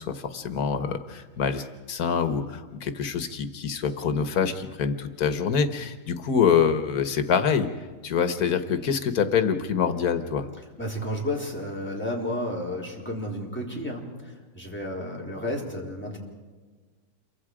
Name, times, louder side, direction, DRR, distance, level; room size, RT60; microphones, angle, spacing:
voice 1, 0.0-7.7 8.0-10.5, left 6 dB, 90° left, 9 dB, 1.7 m, -25 dB
voice 2, 10.8-14.1 14.5-16.2, left 1 dB, 5° left, -2 dB, 4.3 m, -31 dB
28.0 x 24.0 x 4.9 m, 1.4 s
omnidirectional pair, 1.5 m